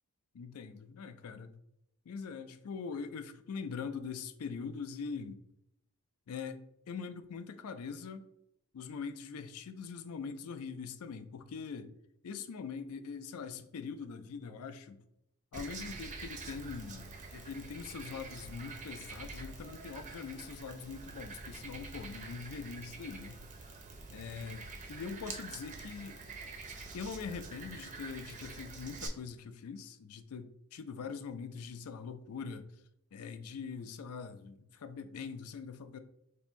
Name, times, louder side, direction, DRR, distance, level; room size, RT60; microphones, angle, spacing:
voice 1, 0.3-1.5 2.1-5.4 6.3-8.2 8.7-11.9 12.2-15.0 15.5-23.4 24.1-24.6 24.9-26.2 26.9-32.7 33.1-36.0, left 5 dB, 70° left, 9 dB, 0.4 m, -43 dB
Frog, 15.5-29.1, right 3 dB, 35° right, 0.5 m, -46 dB
2.7 x 2.5 x 4.2 m, 0.79 s
head